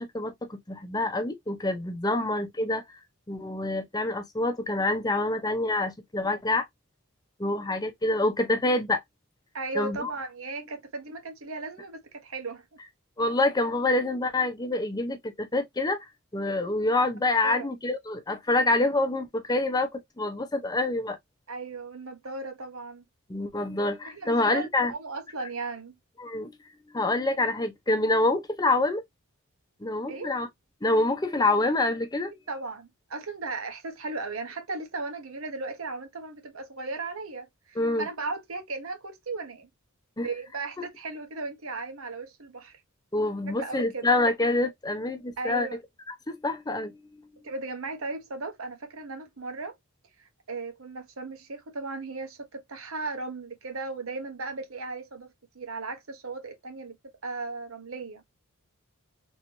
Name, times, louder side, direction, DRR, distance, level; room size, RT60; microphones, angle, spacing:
voice 1, 0.0-2.8 3.3-6.6 7.4-9.0 9.7-10.1 13.2-16.0 16.3-21.2 23.3-24.9 26.2-26.5 26.9-29.0 29.8-30.5 30.8-32.3 37.8-38.1 40.2-40.3 43.1-45.7 46.3-47.0, left 2 dB, 15° left, 0.6 m, -26 dB
voice 2, 9.5-12.6 17.4-17.7 21.5-23.0 24.0-26.0 30.1-30.3 32.3-39.7 40.2-42.8 43.5-44.1 45.4-45.8 47.4-49.7 50.2-57.0 57.2-58.2, right 3 dB, 70° right, 1.0 m, -36 dB
3.1 x 2.9 x 2.7 m
head